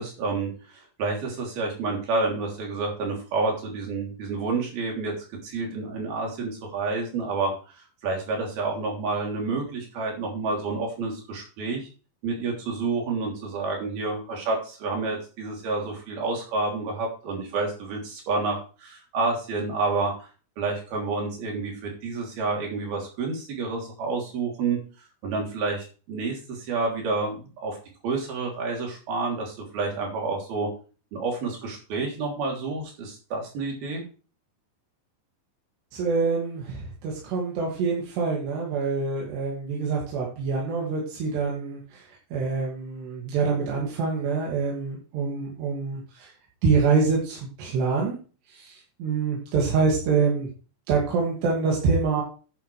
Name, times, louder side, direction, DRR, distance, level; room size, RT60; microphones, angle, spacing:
voice 1, 0.0-11.9 12.2-20.3 20.6-24.8 25.2-27.8 28.0-30.7 31.1-34.0, right 3 dB, 65° right, 0 dB, 5.0 m, -29 dB
voice 2, 35.9-46.3 46.6-48.2 48.5-50.5 50.9-52.2, right 4 dB, 85° right, -3 dB, 4.5 m, -26 dB
10.5 x 9.9 x 3.3 m, 0.36 s
omnidirectional pair, 4.7 m